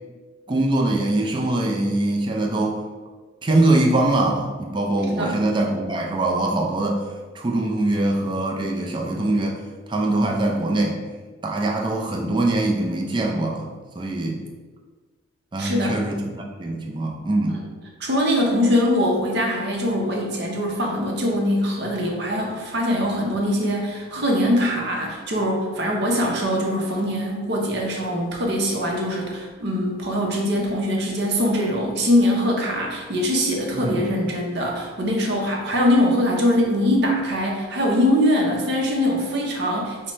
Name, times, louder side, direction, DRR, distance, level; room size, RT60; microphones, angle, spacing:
voice 1, 0.5-2.8 3.4-7.0 7.3-9.6 9.9-11.0 11.4-13.7 14.0-14.4 15.5-17.6 33.7-34.1, right 2 dB, 25° right, 0 dB, 0.4 m, -22 dB
voice 2, 15.6-16.0 18.0-40.1, equal, 55° right, -1 dB, 0.7 m, -22 dB
5.3 x 2.1 x 3.1 m, 1.4 s
head